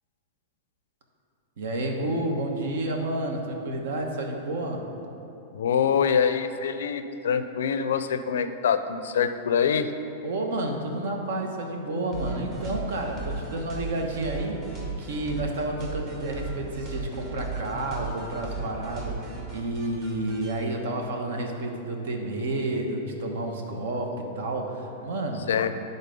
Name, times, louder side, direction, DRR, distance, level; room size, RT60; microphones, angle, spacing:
voice 1, 1.6-4.8 10.2-14.7 15.0-25.5, right 1 dB, 75° right, 3 dB, 1.1 m, -30 dB
voice 2, 5.5-9.9 25.5-25.7, left 7 dB, 90° left, 10 dB, 0.4 m, -25 dB
sound 1, 12.1-20.5, right 4 dB, 30° right, 1.4 m, -36 dB
9.9 x 3.9 x 5.2 m, 2.9 s
supercardioid pair, 155°, 0 cm